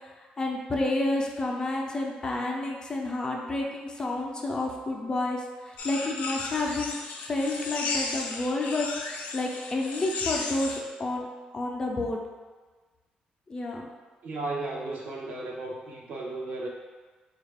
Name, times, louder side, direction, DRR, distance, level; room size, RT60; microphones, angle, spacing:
voice 1, 0.4-6.9 7.3-8.9 9.3-11.3 11.5-12.2 13.5-13.9, left 2 dB, 30° left, 0 dB, 0.5 m, -30 dB
sound 1, 5.8-10.8, left 4 dB, 85° left, 0.5 m, -34 dB
voice 2, 14.2-16.7, right 2 dB, 70° right, -2 dB, 0.7 m, -34 dB
4.2 x 2.4 x 3.4 m, 1.4 s
cardioid pair, 120°, 3 cm